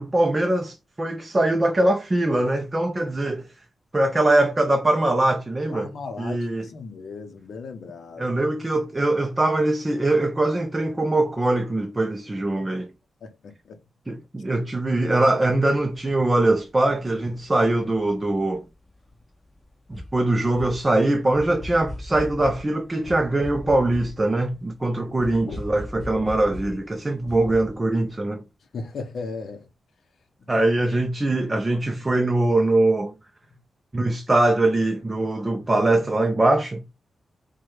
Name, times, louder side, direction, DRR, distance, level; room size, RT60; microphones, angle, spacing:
voice 1, 0.0-3.5 3.9-6.6 8.2-12.9 14.1-18.6 19.9-28.4 30.5-33.1 33.9-36.8, right 2 dB, 20° right, 0.4 m, -22 dB
voice 2, 5.7-8.3 13.2-13.8 25.4-25.6 28.7-29.7, left 4 dB, 65° left, 0.6 m, -36 dB
sound 1, 15.9-16.0 16.2-16.3 16.9-19.2 19.6-27.7 28.0-28.1, left 1 dB, 20° left, 1.3 m, -38 dB
4.6 x 2.2 x 3.0 m
wide cardioid pair, 160°, 0 cm